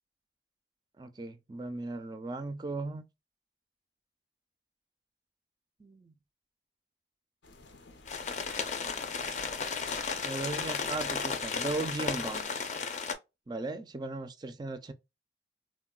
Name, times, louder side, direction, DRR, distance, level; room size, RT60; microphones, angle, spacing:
voice 1, 1.0-3.1 5.8-6.1 10.2-12.5 13.5-14.9, right 2 dB, 25° right, 0.4 m, -37 dB
sound 1, 7.4-12.4, left 3 dB, 85° left, 0.7 m, -52 dB
sound 2, 8.1-13.1, left 5 dB, 40° left, 0.5 m, -34 dB
3.7 x 2.1 x 2.2 m
head